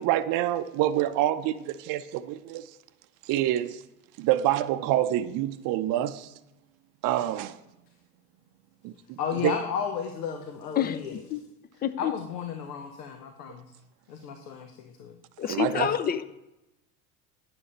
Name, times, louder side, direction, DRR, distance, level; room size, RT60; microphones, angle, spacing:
voice 1, 0.0-2.7 3.3-3.8 4.2-6.3 7.0-7.6 8.8-9.5 15.4-15.9, right 13 dB, 45° right, 0.6 m, -27 dB
voice 2, 9.2-11.2 11.7-13.7 14.1-15.1, left 7 dB, 80° left, 1.0 m, -33 dB
voice 3, 10.8-11.4 11.8-12.1 15.4-16.2, left 9 dB, 20° left, 0.4 m, -28 dB
9.8 x 6.9 x 4.3 m
hypercardioid pair, 75°, 48 cm